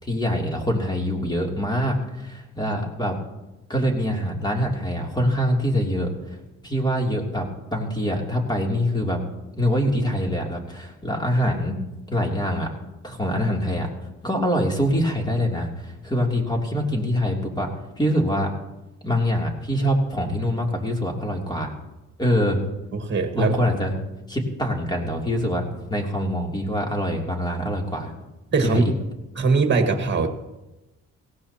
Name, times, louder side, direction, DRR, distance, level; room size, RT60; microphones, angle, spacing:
voice 1, 0.0-3.2 3.7-6.1 6.6-9.2 9.6-11.8 12.1-12.7 13.0-13.9 14.2-17.7 18.0-18.5 19.0-21.7 22.2-22.6 23.3-23.9 24.3-28.1 28.6-28.9, equal, 15° left, 0 dB, 3.0 m, -24 dB
voice 2, 22.9-23.7 28.5-28.9 29.4-30.3, right 4 dB, 35° right, 5 dB, 1.8 m, -21 dB
18.5 x 16.5 x 2.9 m, 1.0 s
cardioid pair, 90°, 30 cm